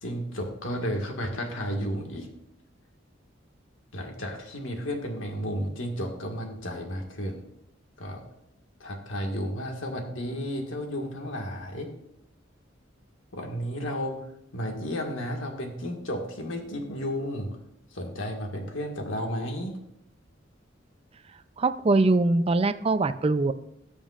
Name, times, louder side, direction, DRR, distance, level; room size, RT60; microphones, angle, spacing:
voice 1, 0.0-2.3 3.9-7.4 8.0-8.2 8.8-11.9 13.3-14.2 14.5-17.6 17.9-19.8, equal, 85° left, 2 dB, 1.8 m, -33 dB
voice 2, 21.6-23.5, right 2 dB, 30° right, 12 dB, 0.4 m, -22 dB
19.0 x 7.1 x 2.5 m, 0.82 s
head